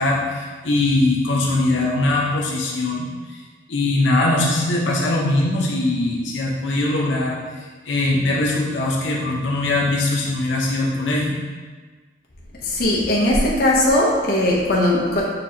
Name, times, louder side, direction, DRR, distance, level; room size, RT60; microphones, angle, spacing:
voice 1, 0.0-3.0 3.7-7.4 7.9-11.4, left 2 dB, 85° left, -3 dB, 0.8 m, -21 dB
voice 2, 12.6-15.2, left 1 dB, 50° left, -4 dB, 0.7 m, -18 dB
6.8 x 2.8 x 2.7 m, 1.4 s
head